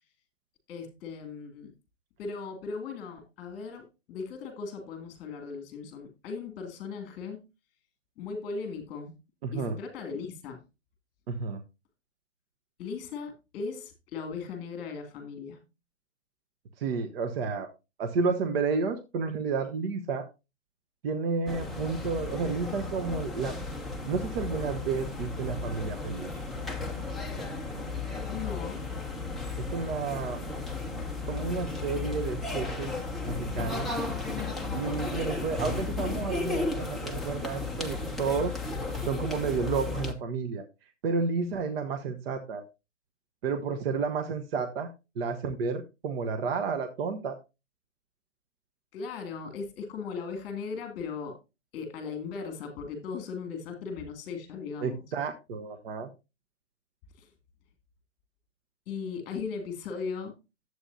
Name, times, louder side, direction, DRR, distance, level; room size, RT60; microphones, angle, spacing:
voice 1, 0.7-1.7 2.2-7.4 8.2-9.1 9.5-10.6 12.8-15.6 28.3-28.9 48.9-51.4 51.7-55.0 57.2-57.3 58.9-60.3, left 5 dB, 30° left, 5 dB, 2.4 m, -38 dB
voice 2, 9.4-9.8 11.3-11.6 16.8-17.7 18.0-20.3 21.0-23.6 24.1-26.3 29.6-30.4 31.3-32.9 33.2-33.9 34.7-38.6 39.0-40.7 41.0-42.7 43.4-44.9 45.2-47.4 54.8-56.1, right 5 dB, 50° right, 7 dB, 1.1 m, -31 dB
sound 1, 21.5-40.1, left 3 dB, ahead, 0.5 m, -34 dB
11.0 x 7.9 x 2.7 m, 0.26 s
hypercardioid pair, 130°, 37 cm